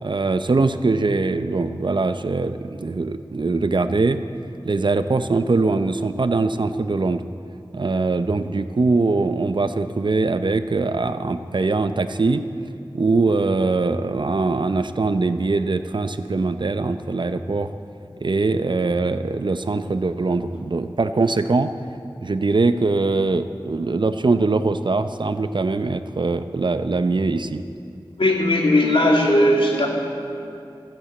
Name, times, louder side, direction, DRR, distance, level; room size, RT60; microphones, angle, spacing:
voice 1, 0.0-4.2 4.6-7.2 7.7-12.4 12.9-17.7 18.2-21.7 22.2-27.6, right 3 dB, 65° right, 10 dB, 0.7 m, -22 dB
voice 2, 28.2-29.9, left 1 dB, 85° left, -1 dB, 2.4 m, -17 dB
13.5 x 12.5 x 8.3 m, 2.5 s
wide cardioid pair, 55°, 9 cm